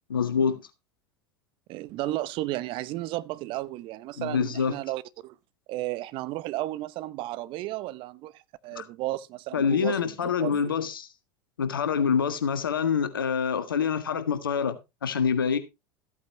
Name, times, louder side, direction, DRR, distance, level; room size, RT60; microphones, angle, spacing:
voice 1, 0.1-0.6 4.2-4.7 8.7-8.8 9.5-11.1 11.6-15.6, left 6 dB, 85° left, 1.5 m, -26 dB
voice 2, 1.7-5.4 5.7-10.6, right 17 dB, 50° right, 0.8 m, -33 dB
14.5 x 8.5 x 3.1 m
hypercardioid pair, 80°, 11 cm